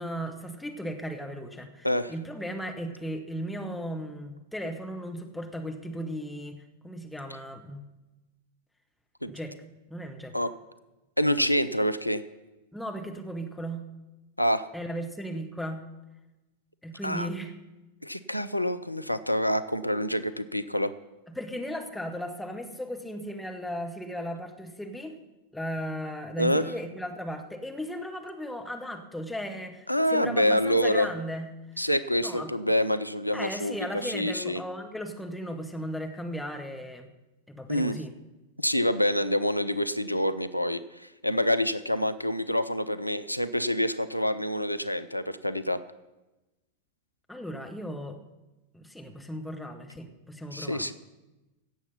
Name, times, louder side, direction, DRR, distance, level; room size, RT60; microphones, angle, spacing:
voice 1, 0.0-7.8 9.3-9.6 9.9-10.3 12.7-13.9 14.7-15.8 16.8-17.5 21.3-25.2 25.5-31.9 32.2-32.5 33.3-37.1 37.5-38.1 47.3-48.2 48.7-50.9, equal, 5° left, 3 dB, 1.3 m, -36 dB
voice 2, 11.2-12.2 14.4-14.7 17.0-17.3 18.0-20.9 26.4-26.7 29.9-31.1 31.8-33.8 34.0-34.6 37.7-38.0 38.6-45.8 50.5-50.9, equal, 90° left, 13 dB, 0.4 m, -27 dB
17.0 x 7.0 x 5.7 m, 1.1 s
figure-of-eight pair, 90°, 0 cm